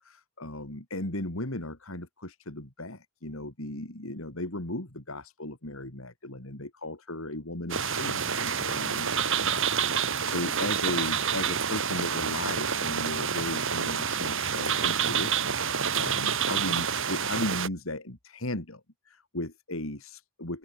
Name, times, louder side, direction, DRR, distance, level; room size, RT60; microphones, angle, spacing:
voice 1, 0.0-20.6, left 1 dB, 70° left, 3.9 m, -36 dB
sound 1, 7.7-17.7, right 7 dB, 65° right, 5.5 m, -28 dB
open air
head